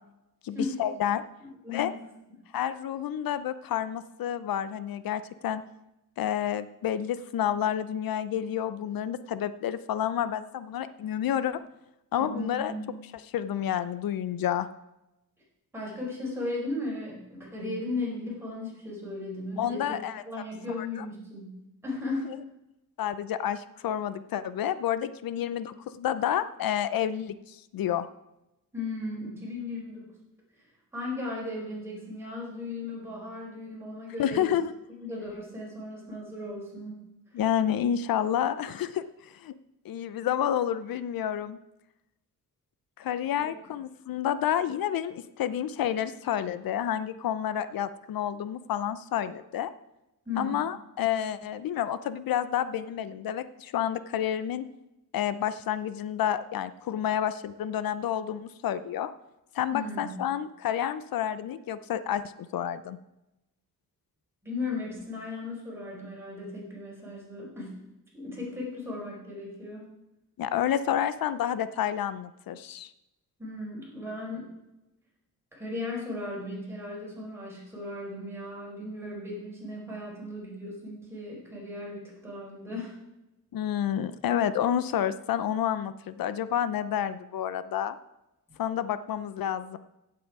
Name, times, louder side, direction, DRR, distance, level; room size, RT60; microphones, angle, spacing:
voice 1, 0.4-1.2 1.7-1.9 2.5-5.6 6.2-11.6 12.1-12.7 13.3-14.7 19.6-20.2 20.8-21.0 23.0-28.1 34.2-34.7 37.3-39.5 39.8-41.6 43.0-49.7 50.4-54.6 55.1-59.1 59.5-62.2 62.5-63.0 70.4-72.9 83.5-88.0 88.6-89.8, left 10 dB, 90° left, 14 dB, 0.6 m, -29 dB
voice 2, 1.4-1.9 12.2-12.8 15.7-20.0 20.2-21.6 21.8-22.3 25.3-25.4 28.7-30.1 30.9-34.5 35.0-37.0 37.3-37.4 43.4-43.5 50.2-50.6 59.7-60.1 64.4-67.8 68.1-69.9 73.4-74.5 75.5-82.9, left 2 dB, 5° right, -5 dB, 5.0 m, -36 dB
16.0 x 7.9 x 4.8 m, 0.93 s
wide cardioid pair, 170°, 34 cm